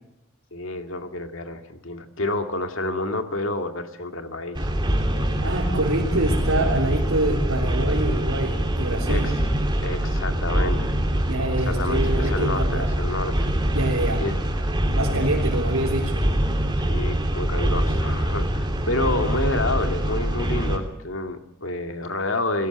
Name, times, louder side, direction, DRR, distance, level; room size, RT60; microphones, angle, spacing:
voice 1, 0.5-4.6 5.1-5.5 9.1-9.3 9.8-11.0 11.6-13.5 14.2-14.4 16.8-22.7, left 2 dB, 65° left, 6 dB, 2.1 m, -29 dB
sound 1, 4.5-20.8, right 1 dB, 20° right, 3.0 m, -24 dB
voice 2, 5.4-9.3 11.3-12.9 13.7-14.2 14.9-16.2, right 1 dB, 80° right, -4 dB, 3.8 m, -26 dB
21.5 x 17.5 x 8.1 m, 0.88 s
head